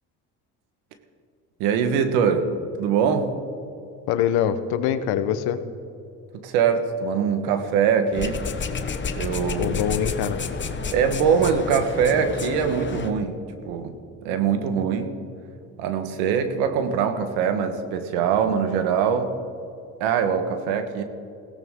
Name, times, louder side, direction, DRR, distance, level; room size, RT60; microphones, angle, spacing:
voice 1, 1.6-2.5 2.8-3.4 6.3-8.5 9.2-9.8 10.9-15.2 15.8-19.3 20.0-21.0, right 7 dB, 85° right, 8 dB, 1.5 m, -23 dB
voice 2, 4.1-5.6 9.6-10.4, left 9 dB, 75° left, 10 dB, 1.1 m, -24 dB
sound 1, 8.1-13.1, left 5 dB, 30° left, 1.2 m, -30 dB
21.5 x 16.5 x 3.8 m, 2.6 s
supercardioid pair, 80°, 38 cm